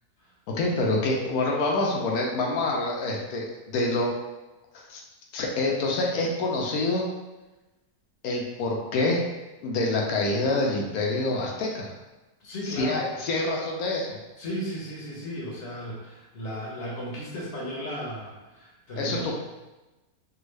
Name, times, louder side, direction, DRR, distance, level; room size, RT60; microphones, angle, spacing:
voice 1, 0.5-4.1 4.7-5.0 5.3-7.0 8.2-9.2 9.6-11.9 12.6-14.2 19.0-19.3, left 2 dB, 70° left, -1 dB, 1.0 m, -26 dB
voice 2, 12.4-13.0 14.4-19.3, equal, 50° left, -5 dB, 1.0 m, -35 dB
3.5 x 2.3 x 3.2 m, 1.1 s
omnidirectional pair, 1.8 m